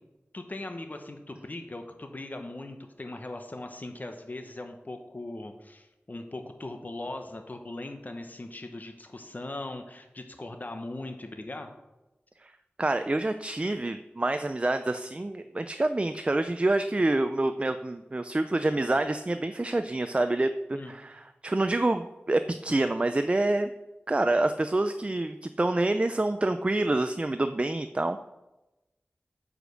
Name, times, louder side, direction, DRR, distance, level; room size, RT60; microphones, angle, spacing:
voice 1, 0.3-11.7 20.7-20.9, left 2 dB, 40° left, 5 dB, 1.0 m, -39 dB
voice 2, 12.8-23.7 24.1-28.2, right 2 dB, 30° right, 9 dB, 0.4 m, -27 dB
9.7 x 5.0 x 6.4 m, 1.0 s
wide cardioid pair, 65°, 4 cm